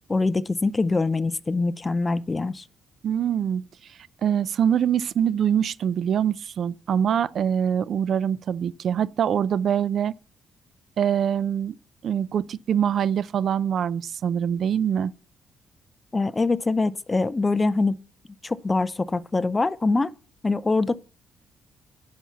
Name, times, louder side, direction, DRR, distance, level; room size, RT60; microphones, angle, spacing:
voice 1, 0.1-2.7 16.1-18.0 18.4-20.1 20.4-21.0, left 3 dB, 25° left, 0.5 m, -24 dB
voice 2, 3.0-3.7 4.2-10.1 11.0-11.8 12.0-15.1, right 8 dB, 60° right, 0.4 m, -24 dB
10.0 x 5.7 x 7.1 m
cardioid pair, 90°, 0 cm